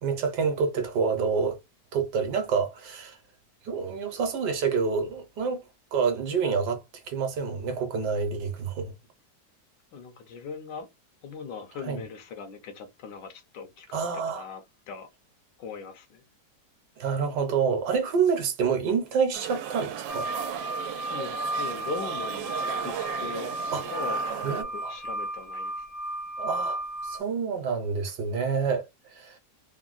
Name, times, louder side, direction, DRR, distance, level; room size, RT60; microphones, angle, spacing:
voice 1, 0.0-1.6 1.9-3.2 3.6-5.6 5.9-8.9 11.8-12.0 13.9-14.5 17.0-20.3 23.7-23.8 24.4-24.9 26.4-28.8 29.1-29.4, right 5 dB, 70° right, 1.3 m, -27 dB
voice 2, 9.9-10.9 11.2-14.0 14.3-15.1 15.6-16.2 21.1-25.9, left 5 dB, 75° left, 1.3 m, -40 dB
sound 1, 19.3-24.6, right 9 dB, 85° right, 1.3 m, -35 dB
sound 2, 20.1-27.2, right 1 dB, 55° left, 0.8 m, -33 dB
3.6 x 2.1 x 2.4 m
omnidirectional pair, 2.0 m